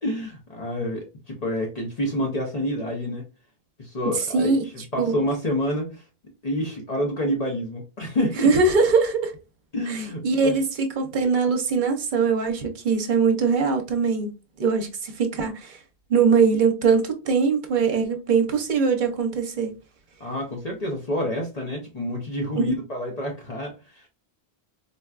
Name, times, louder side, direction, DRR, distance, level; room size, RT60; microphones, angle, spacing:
voice 1, 0.0-3.2 3.8-6.0 6.4-8.5 9.7-10.6 20.2-24.1, equal, 45° left, 0.8 m, -28 dB
voice 2, 4.1-4.7 5.0-5.1 8.4-9.3 9.9-15.8 16.1-19.7 22.5-22.7, right 5 dB, 55° right, 0.7 m, -22 dB
3.9 x 2.2 x 2.3 m
omnidirectional pair, 1.0 m